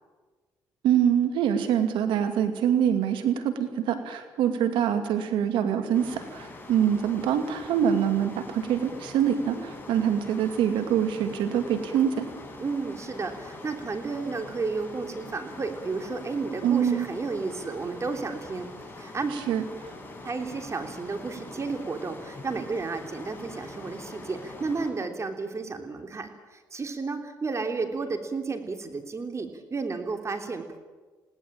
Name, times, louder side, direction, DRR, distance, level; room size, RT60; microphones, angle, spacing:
voice 1, 0.8-12.3 16.6-17.1 19.3-19.9, right 9 dB, 75° right, 7 dB, 2.5 m, -25 dB
sound 1, 5.9-24.9, left 2 dB, 20° left, 7.4 m, -43 dB
voice 2, 12.6-19.4 20.2-30.8, right 4 dB, 35° right, 5 dB, 3.4 m, -32 dB
20.5 x 17.5 x 8.9 m, 1.3 s
supercardioid pair, 60°, 8 cm